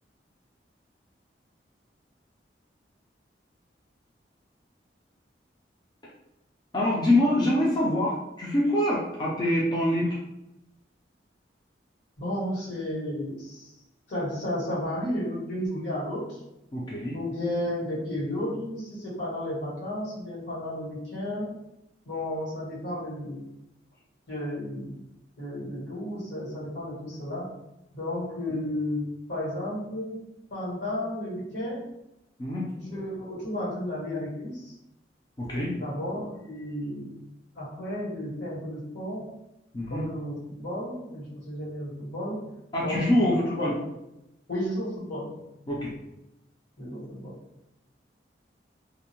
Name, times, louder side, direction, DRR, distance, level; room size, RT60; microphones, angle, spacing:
voice 1, 6.7-10.2 16.7-17.2 28.5-28.6 32.4-32.6 35.4-35.7 39.7-40.0 42.7-43.7 45.7-45.9, left 1 dB, 25° left, -5 dB, 0.4 m, -25 dB
voice 2, 12.2-13.7 14.1-16.4 17.1-21.5 22.0-23.5 24.3-25.0 25.4-27.5 27.9-30.2 30.5-31.9 32.7-34.7 35.7-37.1 37.5-39.3 39.9-42.5 42.8-43.7 44.5-45.3 46.8-47.4, left 1 dB, 80° left, -8 dB, 1.5 m, -33 dB
2.6 x 2.1 x 2.8 m, 0.90 s
head